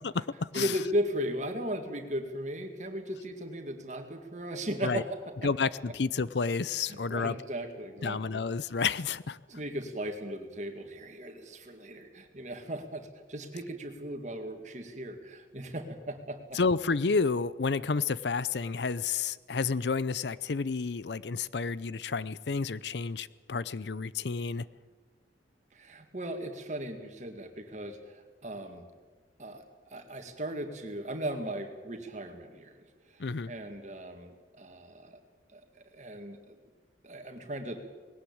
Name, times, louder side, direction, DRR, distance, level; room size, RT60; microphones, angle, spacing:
voice 1, 0.0-0.7 4.8-5.0 5.4-7.4 8.0-9.4 16.5-24.7 33.2-33.5, left 4 dB, 70° left, 18 dB, 0.6 m, -30 dB
voice 2, 0.5-5.7 6.9-8.4 9.5-16.6 25.7-28.9 29.4-29.6 29.9-32.9 33.1-35.2 35.5-36.6 37.0-37.8, equal, 40° right, 6 dB, 2.2 m, -37 dB
19.5 x 17.5 x 8.7 m, 1.3 s
head